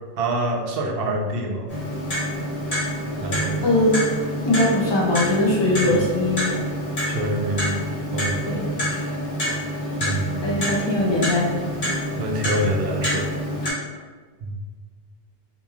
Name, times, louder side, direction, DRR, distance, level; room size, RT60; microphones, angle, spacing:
voice 1, 0.2-1.8 3.2-3.7 5.8-6.0 7.0-7.8 8.1-8.5 8.9-9.1 10.0-10.7 12.2-13.3 14.4-14.6, right 1 dB, 70° right, 1 dB, 0.7 m, -26 dB
Clock, 1.7-13.7, equal, 65° left, 1.3 m, -27 dB
voice 2, 3.3-4.0 4.4-6.6 8.5-8.7 10.4-11.7 13.6-13.7, left 1 dB, 40° left, -3 dB, 0.4 m, -21 dB
3.0 x 2.5 x 2.3 m, 1.4 s
omnidirectional pair, 1.0 m